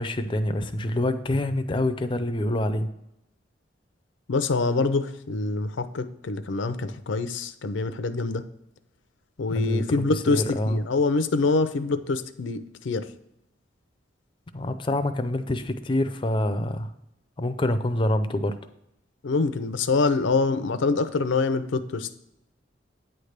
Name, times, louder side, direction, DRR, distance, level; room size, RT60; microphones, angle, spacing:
voice 1, 0.0-2.9 9.5-9.8 10.3-10.8 14.5-16.9 17.4-18.6, left 1 dB, 25° left, 9 dB, 0.4 m, -26 dB
voice 2, 4.3-8.4 9.4-13.1 19.2-22.1, left 3 dB, 80° left, 11 dB, 0.5 m, -25 dB
9.1 x 3.3 x 6.4 m, 0.83 s
head